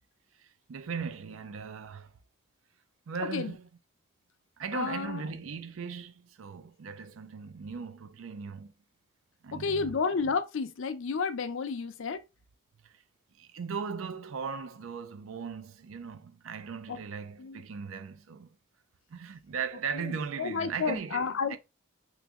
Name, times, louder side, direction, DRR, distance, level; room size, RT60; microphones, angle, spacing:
voice 1, 0.4-2.1 3.1-3.7 4.6-8.7 9.4-9.9 12.8-13.0 13.3-18.6 19.1-21.6, right 6 dB, 85° right, 0.4 m, -38 dB
voice 2, 3.2-3.6 4.7-5.3 9.5-12.2 15.3-15.4 16.9-17.0 17.4-17.6 19.9-21.6, left 5 dB, 75° left, 0.5 m, -31 dB
3.2 x 2.5 x 3.5 m
head